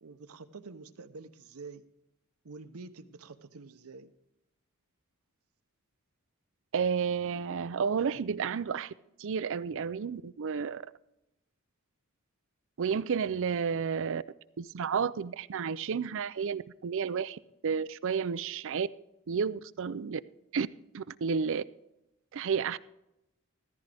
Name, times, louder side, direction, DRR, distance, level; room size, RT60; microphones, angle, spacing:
voice 1, 0.0-1.9 2.4-4.1, right 4 dB, 90° right, 0.8 m, -47 dB
voice 2, 6.7-8.9 9.2-10.8 12.8-14.2 14.6-18.9 19.3-20.2 20.5-20.7 20.9-21.6 22.3-22.8, right 6 dB, 60° right, 0.4 m, -31 dB
14.5 x 14.5 x 3.4 m
head